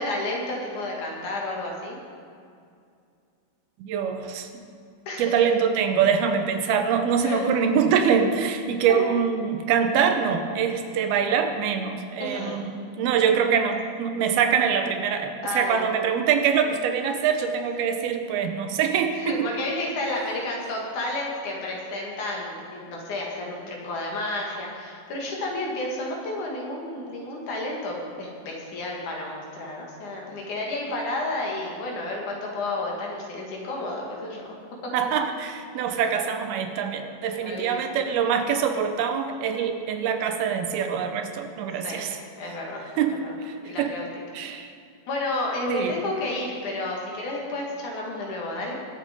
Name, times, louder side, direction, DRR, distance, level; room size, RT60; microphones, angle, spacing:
voice 1, 0.0-2.0 5.1-5.3 7.2-7.5 8.9-9.1 12.2-12.6 15.4-15.9 19.2-34.4 34.8-34.9 37.4-38.1 41.8-42.0 42.4-42.8 43.2-43.3 43.6-44.1 45.1-48.7, left 2 dB, 60° left, -2 dB, 3.3 m, -31 dB
voice 2, 3.8-4.6 5.2-19.5 34.9-42.2 43.0-43.9 44.3-44.7 45.7-46.0, right 7 dB, 85° right, 7 dB, 2.9 m, -24 dB
21.5 x 7.6 x 5.3 m, 2.3 s
omnidirectional pair, 4.3 m